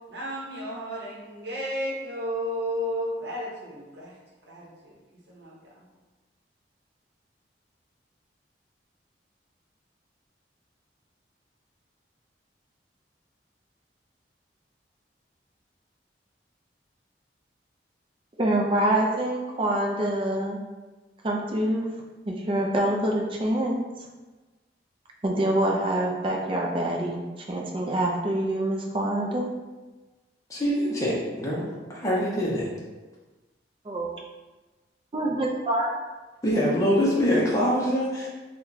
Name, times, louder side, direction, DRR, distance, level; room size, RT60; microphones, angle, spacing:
voice 1, 0.1-4.2 4.4-5.0 5.3-5.8, equal, 65° right, -4 dB, 0.8 m, -33 dB
voice 2, 18.4-20.6 21.2-21.8 22.2-23.8 25.2-29.4 33.9-34.1 35.1-35.9, right 1 dB, 30° right, -1 dB, 0.4 m, -25 dB
voice 3, 30.5-31.7 31.9-32.7 36.4-38.3, equal, 20° left, -6 dB, 0.5 m, -24 dB
2.8 x 2.1 x 3.8 m, 1.2 s
head